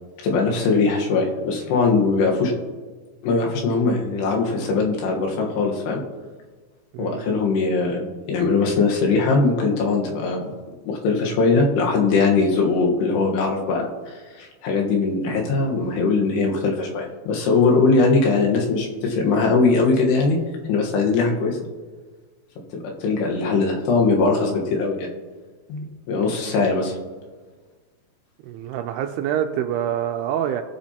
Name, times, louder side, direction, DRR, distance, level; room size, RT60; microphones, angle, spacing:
voice 1, 0.2-2.5 3.2-6.0 7.0-10.5 10.9-20.4 20.7-21.6 22.8-25.1 25.7-27.0, left 4 dB, 75° left, 0 dB, 3.3 m, -21 dB
voice 2, 6.9-7.3 28.4-30.6, right 10 dB, 85° right, 6 dB, 2.4 m, -26 dB
21.0 x 7.5 x 2.8 m, 1.4 s
omnidirectional pair, 5.1 m